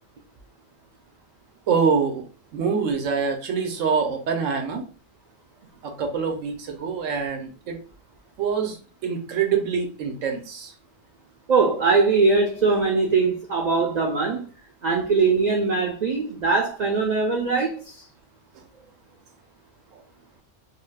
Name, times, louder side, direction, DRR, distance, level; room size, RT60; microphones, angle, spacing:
voice 1, 1.7-2.2 2.5-4.8 5.8-7.8 8.4-8.8 9.0-10.7 19.9-20.0, right 6 dB, 90° right, 1.1 m, -25 dB
voice 2, 11.5-14.4 14.8-17.8, right 4 dB, 75° right, 0.4 m, -21 dB
3.3 x 2.6 x 2.3 m
omnidirectional pair, 1.3 m